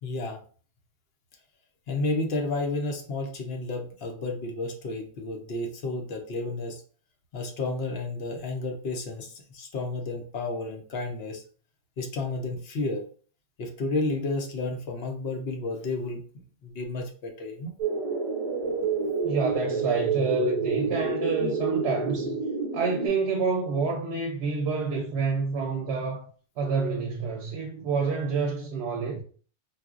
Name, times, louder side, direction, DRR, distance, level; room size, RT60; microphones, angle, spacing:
voice 1, 0.0-0.4 1.9-6.8 7.3-11.4 12.0-13.0 13.6-17.7, left 2 dB, 60° left, 0.9 m, -31 dB
sound 1, 17.8-23.1, right 4 dB, 30° right, 0.7 m, -28 dB
voice 2, 19.2-22.3 22.7-26.3 26.6-29.2, right 4 dB, 70° right, 0.9 m, -28 dB
4.0 x 2.2 x 2.4 m
omnidirectional pair, 1.2 m